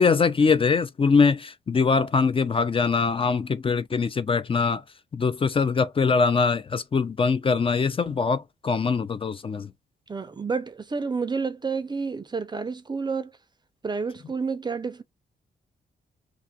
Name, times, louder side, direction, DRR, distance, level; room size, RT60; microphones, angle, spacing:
voice 1, 0.0-4.8 5.1-9.7, left 5 dB, 30° left, 0.4 m, -22 dB
voice 2, 10.1-13.3 13.8-15.0, right 5 dB, 25° right, 0.4 m, -29 dB
2.5 x 2.4 x 2.7 m
cardioid pair, 95°, 18 cm